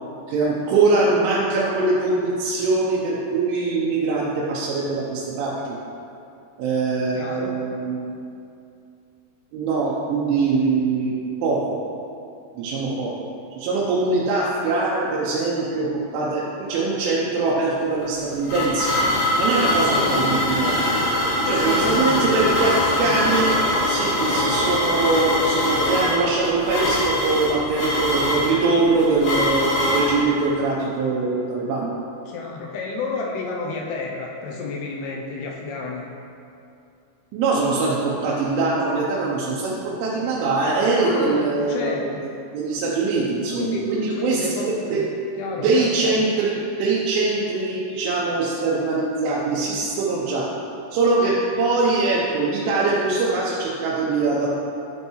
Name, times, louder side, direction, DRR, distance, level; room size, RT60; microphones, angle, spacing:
voice 1, 0.3-5.8 6.6-8.3 9.5-11.1 11.4-11.8 12.6-13.3 13.6-15.9 16.1-18.9 19.4-20.8 21.4-23.5 23.9-31.9 37.3-42.1 42.5-44.4 44.9-45.0 45.6-50.5 50.9-54.6, right 3 dB, 90° right, -6 dB, 3.3 m, -22 dB
voice 2, 7.2-7.6 19.9-20.3 21.4-22.3 23.0-23.2 32.3-36.1 41.0-42.2 43.5-45.0 45.4-46.2, left 4 dB, 90° left, -2 dB, 2.3 m, -30 dB
sound 1, 18.0-30.2, left 1 dB, 65° left, 2.2 m, -22 dB
sound 2, 18.3-27.5, left 1 dB, 75° right, 2.1 m, -41 dB
12.0 x 5.4 x 3.1 m, 2.6 s
omnidirectional pair, 5.4 m